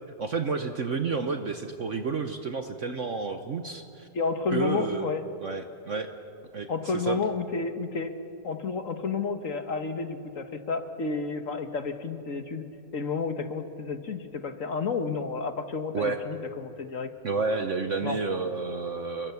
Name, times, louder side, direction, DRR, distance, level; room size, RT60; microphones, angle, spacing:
voice 1, 0.2-4.1 4.5-5.1 5.4-6.1 6.5-6.7 6.9-7.2 15.9-16.2 17.2-19.3, right 4 dB, 45° right, 7 dB, 1.2 m, -30 dB
voice 2, 4.1-5.2 6.7-8.1 8.4-12.6 12.9-17.1 18.0-18.2, left 4 dB, 50° left, 8 dB, 1.5 m, -31 dB
28.5 x 23.0 x 7.1 m, 2.6 s
omnidirectional pair, 2.0 m